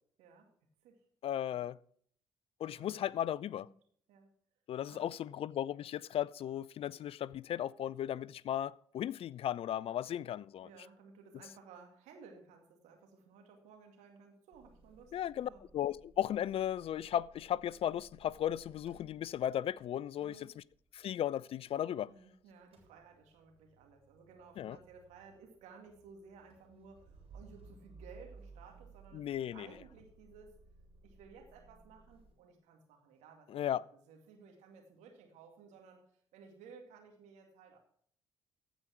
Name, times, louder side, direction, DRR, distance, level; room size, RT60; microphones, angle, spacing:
voice 1, 0.2-0.5 0.8-1.0 2.7-3.0 3.6-3.7 4.1-4.3 4.8-5.1 10.6-15.6 20.2-20.5 22.1-30.5 31.0-33.8 34.1-36.0 36.3-37.8, right 5 dB, 70° right, 2.3 m, -57 dB
voice 2, 1.2-1.8 2.6-3.7 4.7-10.7 15.1-20.6 20.9-22.1 24.6-24.8 29.1-29.7 33.5-33.8, left 11 dB, 50° left, 0.4 m, -36 dB
Motor vehicle (road) / Engine starting / Idling, 14.5-22.2 22.5-32.3, right 4 dB, 50° right, 3.4 m, -60 dB
15.0 x 5.1 x 5.9 m
hypercardioid pair, 45°, 12 cm